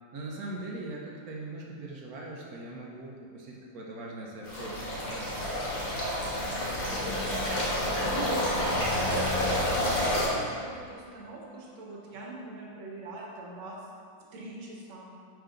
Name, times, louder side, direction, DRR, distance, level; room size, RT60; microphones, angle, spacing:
voice 1, 0.1-5.5 6.8-7.4, right 2 dB, 60° right, -2 dB, 1.1 m, -41 dB
sound 1, 4.4-10.3, left 1 dB, 75° left, 2.1 m, -29 dB
voice 2, 8.1-9.6 9.9-13.8 14.3-15.1, right 2 dB, 85° right, -3 dB, 1.9 m, -41 dB
4.7 x 4.6 x 5.1 m, 2.3 s
omnidirectional pair, 2.1 m